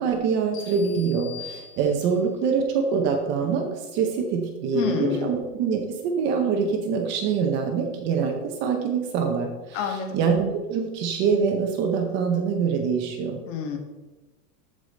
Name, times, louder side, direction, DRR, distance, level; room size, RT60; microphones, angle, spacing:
voice 1, 0.0-13.4, right 6 dB, 25° right, 3 dB, 0.7 m, -25 dB
sound 1, 0.5-2.4, left 7 dB, 85° left, 3.2 m, -43 dB
voice 2, 4.7-5.3 9.7-10.2 13.5-13.8, left 8 dB, 50° left, 4 dB, 1.8 m, -28 dB
14.0 x 4.9 x 3.9 m, 1.2 s
supercardioid pair, 165°, 46 cm